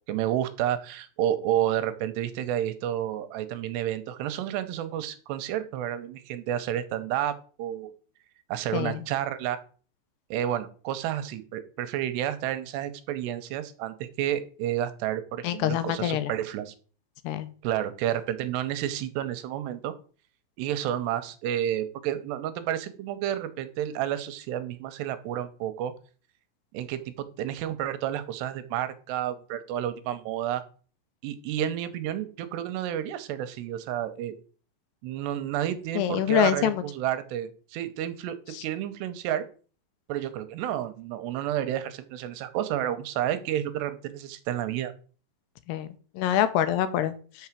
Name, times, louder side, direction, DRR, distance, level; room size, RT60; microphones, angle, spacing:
voice 1, 0.1-7.9 8.5-9.6 10.3-16.7 17.6-19.9 20.6-25.9 26.7-30.6 31.2-34.4 35.0-38.4 38.6-39.4 40.1-44.9, right 11 dB, 85° right, 11 dB, 2.8 m, -30 dB
voice 2, 15.4-16.3 17.2-17.5 36.0-36.8 45.7-47.5, left 11 dB, 85° left, 11 dB, 2.7 m, -26 dB
6.2 x 5.8 x 7.2 m, 0.40 s
omnidirectional pair, 4.9 m